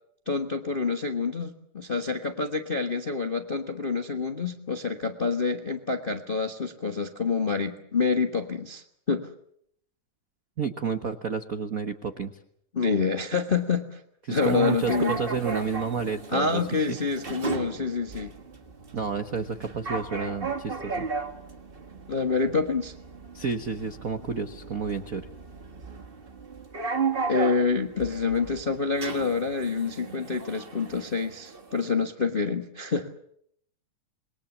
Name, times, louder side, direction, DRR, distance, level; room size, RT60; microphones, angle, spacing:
voice 1, 0.3-9.3 12.7-14.0 14.3-15.2 16.3-18.3 22.1-22.9 27.3-33.1, left 4 dB, 40° left, 4 dB, 0.7 m, -27 dB
voice 2, 10.6-12.3 14.3-16.6 16.9-17.0 18.9-21.1 23.3-25.3, right 5 dB, 60° right, 8 dB, 0.8 m, -30 dB
sound 1, 14.4-31.9, right 4 dB, 30° right, 1.1 m, -36 dB
27.5 x 21.5 x 7.3 m, 0.70 s
omnidirectional pair, 3.4 m